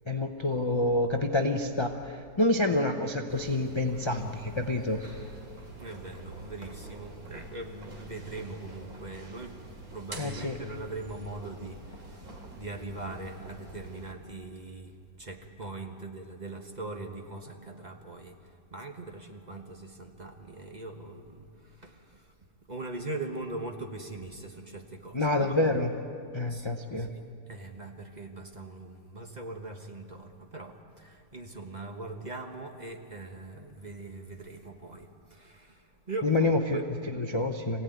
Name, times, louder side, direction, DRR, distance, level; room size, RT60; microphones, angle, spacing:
voice 1, 0.1-5.0 10.1-10.6 25.1-25.9 26.3-27.1 36.2-36.8 37.2-37.8, left 2 dB, 25° left, 4 dB, 0.6 m, -27 dB
sound 1, 3.3-14.1, right 2 dB, 55° right, 3.0 m, -46 dB
voice 2, 5.2-22.3 22.7-25.6 26.5-26.7 26.9-37.0, right 2 dB, 25° right, 3 dB, 1.3 m, -41 dB
25.0 x 17.0 x 9.2 m, 2.5 s
omnidirectional pair, 1.9 m